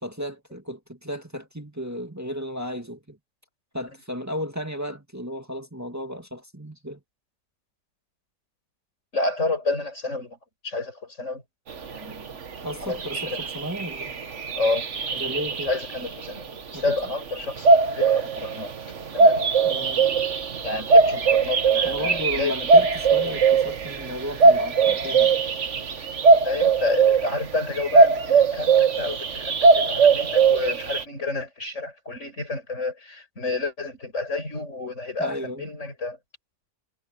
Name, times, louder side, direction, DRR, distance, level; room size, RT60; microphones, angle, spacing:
voice 1, 0.0-3.2 3.7-7.0 12.6-14.1 15.1-15.7 16.7-17.1 19.6-20.1 21.8-25.4 35.2-35.7, equal, 15° right, 2.0 m, -34 dB
voice 2, 9.1-10.4 10.6-11.4 11.9-12.3 12.8-13.0 13.2-13.4 14.6-18.7 19.1-19.5 20.6-22.5 26.4-36.2, left 3 dB, 85° left, 6.8 m, -30 dB
sound 1, 12.7-12.8 13.0-16.1 17.6-31.0, right 4 dB, 75° right, 1.7 m, -20 dB
omnidirectional pair, 1.2 m